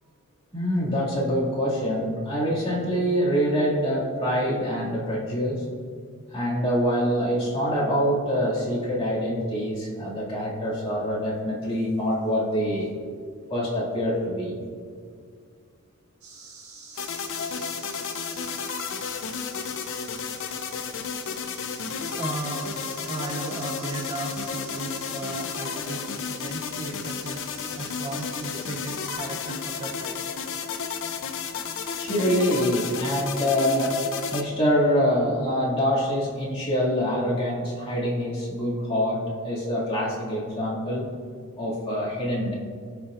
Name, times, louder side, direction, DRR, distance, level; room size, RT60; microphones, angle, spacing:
voice 1, 0.5-5.6 6.3-12.9 13.5-14.6 32.0-34.0 34.3-41.1 41.6-42.5, equal, 25° left, -7 dB, 2.3 m, -25 dB
sound 1, 16.2-29.2, right 4 dB, 75° right, 1.7 m, -47 dB
sound 2, 17.0-34.4, left 6 dB, 60° left, 0.6 m, -32 dB
voice 2, 22.2-22.8 23.1-27.5 27.8-30.2, right 2 dB, 25° right, 1 dB, 0.6 m, -35 dB
17.0 x 5.9 x 2.5 m, 2.1 s
head